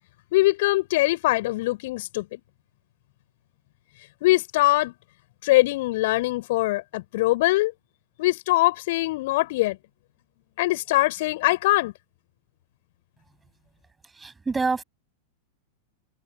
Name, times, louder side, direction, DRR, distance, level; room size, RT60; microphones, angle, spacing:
voice 1, 0.3-2.4 4.2-4.9 5.4-7.7 8.2-9.8 10.6-11.9, left 19 dB, 50° left, 5.6 m, -22 dB
voice 2, 14.1-14.8, right 4 dB, 10° right, 6.7 m, -26 dB
figure-of-eight pair, 90°, 0 cm